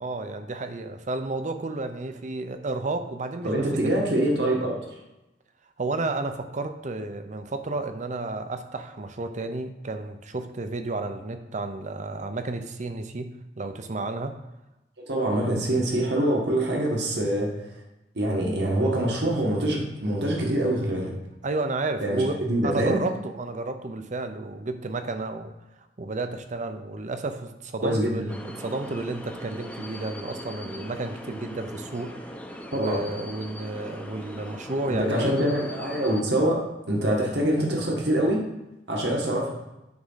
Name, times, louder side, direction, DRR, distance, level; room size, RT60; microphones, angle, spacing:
voice 1, 0.0-4.0 5.8-13.3 13.6-14.4 21.4-25.5 26.0-35.3, right 2 dB, 45° right, 8 dB, 0.7 m, -32 dB
voice 2, 3.4-4.8 15.1-17.5 18.2-21.1 22.0-23.0 27.8-28.3 32.7-33.0 34.9-36.6 36.9-38.4 38.9-39.5, right 1 dB, 70° right, -1 dB, 1.8 m, -24 dB
sound 1, 28.3-36.2, equal, 10° left, 0.8 m, -40 dB
9.6 x 3.7 x 5.7 m, 0.99 s
head